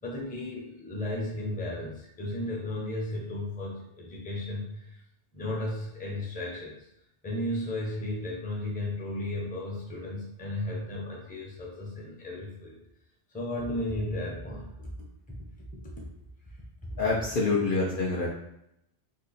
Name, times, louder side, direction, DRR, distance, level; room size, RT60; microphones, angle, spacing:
voice 1, 0.0-5.0 5.3-6.9 7.2-12.8 13.3-14.9 16.0-16.1, left 1 dB, 10° left, -3 dB, 0.6 m, -34 dB
voice 2, 17.0-18.3, left 3 dB, 60° left, -3 dB, 0.6 m, -26 dB
2.7 x 2.6 x 4.0 m, 0.79 s
omnidirectional pair, 1.2 m